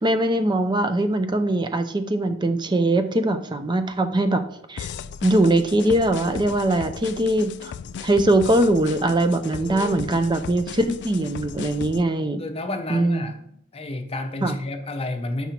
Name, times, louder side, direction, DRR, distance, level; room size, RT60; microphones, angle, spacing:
voice 1, 0.0-4.4 4.7-4.9 5.2-7.7 8.0-12.5 12.9-13.3 14.4-14.6, right 1 dB, 20° right, 9 dB, 0.5 m, -21 dB
sound 1, 4.8-12.0, left 7 dB, 55° left, 0.3 m, -36 dB
voice 2, 9.6-10.0 12.4-13.4 13.7-15.5, left 2 dB, 30° left, 5 dB, 0.8 m, -31 dB
5.9 x 5.4 x 4.4 m, 0.73 s
head